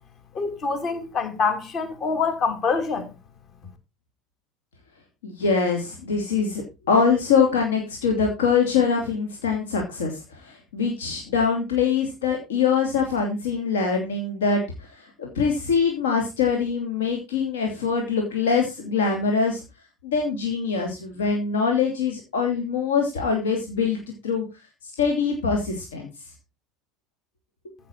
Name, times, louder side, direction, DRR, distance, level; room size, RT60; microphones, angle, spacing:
voice 1, 0.3-3.1, left 5 dB, 40° left, 2.9 m, -25 dB
voice 2, 5.2-19.6 20.0-24.4 24.8-26.1, left 5 dB, 70° left, 2.7 m, -24 dB
14.5 x 6.3 x 4.6 m
figure-of-eight pair, 70°, 0 cm